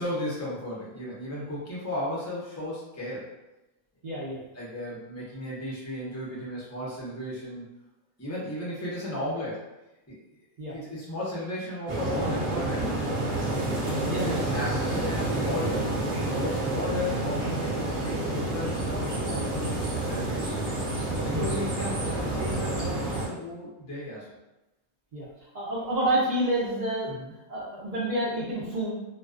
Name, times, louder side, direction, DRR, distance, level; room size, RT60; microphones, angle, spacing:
voice 1, 0.0-3.3 4.5-7.7 8.2-9.7 10.1-10.2 10.7-13.4 13.9-19.7 20.1-20.5 21.2-24.3 27.1-27.3, left 1 dB, 25° left, -6 dB, 0.3 m, -35 dB
voice 2, 4.0-4.4 10.6-10.7 14.1-14.5 21.1-21.6 25.1-25.3 25.5-27.1 27.5-28.9, right 1 dB, 85° right, -6 dB, 0.4 m, -29 dB
sound 1, 11.9-23.3, right 2 dB, 45° right, 0.8 m, -29 dB
2.3 x 2.3 x 2.3 m, 0.98 s
omnidirectional pair, 1.5 m